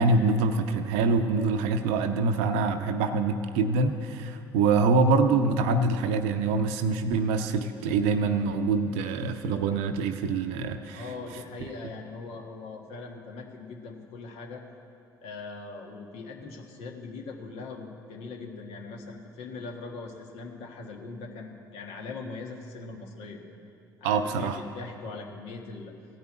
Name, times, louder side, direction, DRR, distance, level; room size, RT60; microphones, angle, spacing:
voice 1, 0.0-11.0 24.0-24.6, right 3 dB, 70° right, 7 dB, 0.6 m, -25 dB
voice 2, 10.9-14.6 15.2-23.4 24.0-25.9, left 3 dB, 65° left, 2 dB, 1.5 m, -41 dB
15.0 x 5.5 x 8.8 m, 2.5 s
figure-of-eight pair, 55°, 11 cm